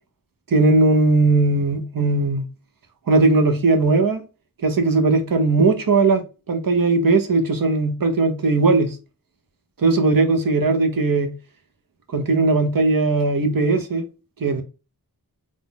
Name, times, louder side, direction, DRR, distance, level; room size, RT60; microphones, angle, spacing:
voice 1, 0.5-2.5 3.1-4.2 4.6-6.2 6.5-8.9 9.8-11.3 12.1-14.0 14.4-14.6, right 3 dB, 60° right, 1.0 m, -18 dB
3.8 x 2.4 x 3.9 m
wide cardioid pair, 80°, 38 cm